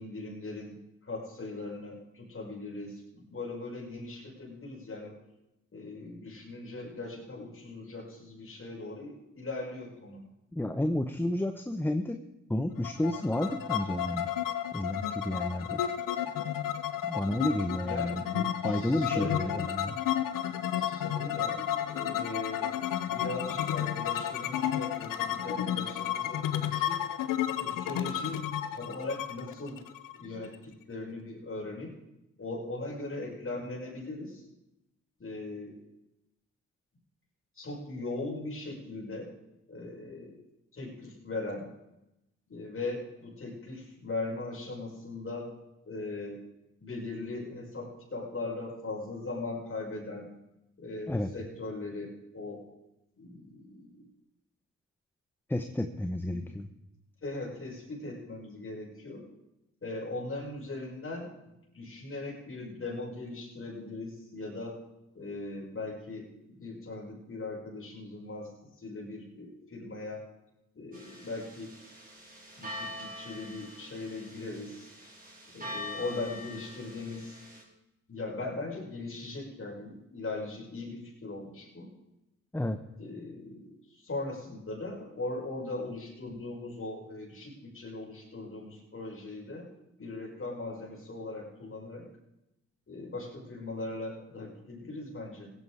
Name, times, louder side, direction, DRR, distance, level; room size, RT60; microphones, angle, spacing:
voice 1, 0.0-5.2 5.7-10.2 17.8-19.7 20.7-22.7 23.1-27.0 27.6-28.4 28.7-29.8 30.2-31.9 32.4-34.4 35.2-35.8 37.5-39.3 39.7-40.4 40.7-41.7 42.5-45.5 45.8-46.4 46.8-50.3 50.8-52.6 53.2-54.1 56.3-56.5 57.2-59.3 59.8-64.8 65.1-70.2 70.7-71.8 72.6-74.9 75.5-77.4 78.1-81.9 83.0-89.7 90.0-92.1 92.9-95.5, left 2 dB, 40° left, -3 dB, 5.8 m, -39 dB
voice 2, 10.5-12.2 12.5-14.3 14.7-15.8 17.0-19.9 51.1-51.3 55.5-56.7 82.5-82.8, left 1 dB, 5° left, 8 dB, 1.0 m, -31 dB
sound 1, 12.8-30.5, left 10 dB, 90° left, 0.8 m, -32 dB
sound 2, 70.9-77.6, left 1 dB, 25° right, 4.6 m, -44 dB
16.5 x 10.0 x 4.9 m, 0.90 s
cardioid pair, 55°, 32 cm